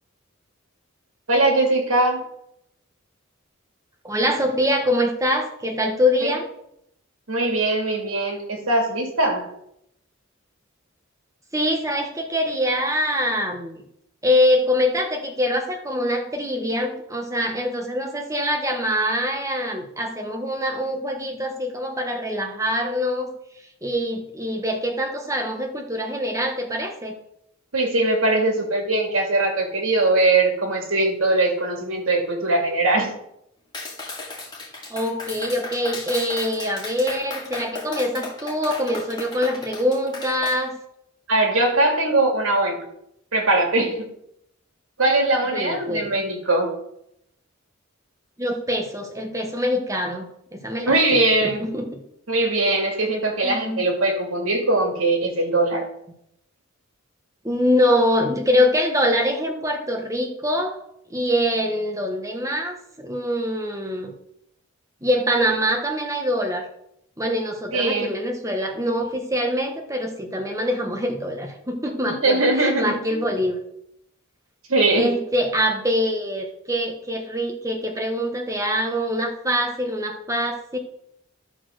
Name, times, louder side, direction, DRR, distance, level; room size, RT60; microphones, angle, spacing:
voice 1, 1.3-2.2 6.2-6.4 7.3-9.4 27.7-33.1 41.3-42.8 43.3-44.1 45.0-46.7 50.9-51.6 52.3-55.9 67.7-68.1 72.0-73.2 74.7-75.1, right 2 dB, 80° right, 2 dB, 2.3 m, -21 dB
voice 2, 4.0-6.5 11.5-13.8 14.2-23.3 23.8-27.2 34.9-40.8 45.5-46.1 48.4-50.3 50.6-51.2 51.6-52.0 53.4-53.8 57.4-60.8 61.1-64.1 65.0-66.7 67.2-73.6 74.9-80.8, equal, 15° right, 3 dB, 1.2 m, -24 dB
Clapping, 33.7-40.6, left 3 dB, 20° left, 2.2 m, -35 dB
11.5 x 4.3 x 6.4 m, 0.78 s
head